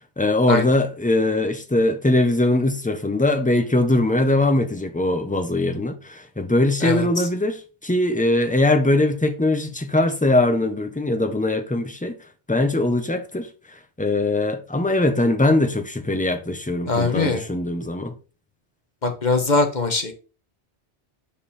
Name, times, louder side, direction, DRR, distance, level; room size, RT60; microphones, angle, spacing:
voice 1, 0.2-12.2 12.5-18.1, left 2 dB, 10° left, 0.9 m, -21 dB
voice 2, 16.9-17.4 19.0-20.1, left 3 dB, 40° left, 1.4 m, -21 dB
7.3 x 5.3 x 4.3 m
omnidirectional pair, 1.2 m